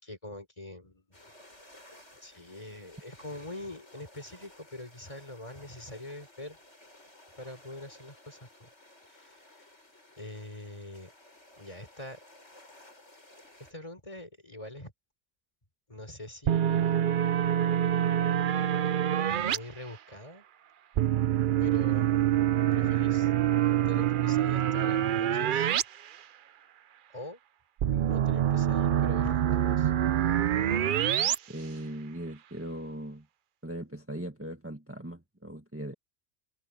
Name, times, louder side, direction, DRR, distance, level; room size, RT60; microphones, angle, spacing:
voice 1, 0.0-1.2 2.2-6.6 7.3-8.7 9.1-9.7 10.2-11.1 11.6-12.2 13.6-14.9 15.9-17.0 19.2-20.5 21.6-23.3 23.8-25.7 27.1-27.4 27.9-29.9, left 1 dB, 30° left, 3.9 m, -44 dB
sound 1, 1.1-13.7, left 1 dB, 80° left, 8.0 m, -56 dB
sound 2, 16.5-19.6 21.0-25.8 26.1-26.2 27.8-31.4, right 11 dB, 55° right, 0.6 m, -26 dB
voice 2, 31.5-33.2 33.6-35.9, right 1 dB, 10° right, 1.7 m, -39 dB
omnidirectional pair, 1.2 m